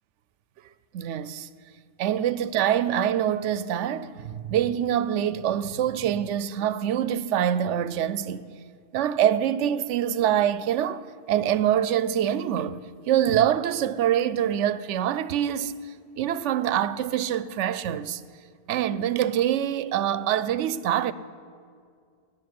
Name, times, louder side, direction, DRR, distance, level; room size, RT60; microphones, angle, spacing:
voice 1, 0.9-1.5 2.0-8.5 8.9-15.7 16.2-18.2 18.7-21.1, right 10 dB, 85° right, 0.9 m, -25 dB
18.5 x 6.8 x 9.5 m
omnidirectional pair, 1.2 m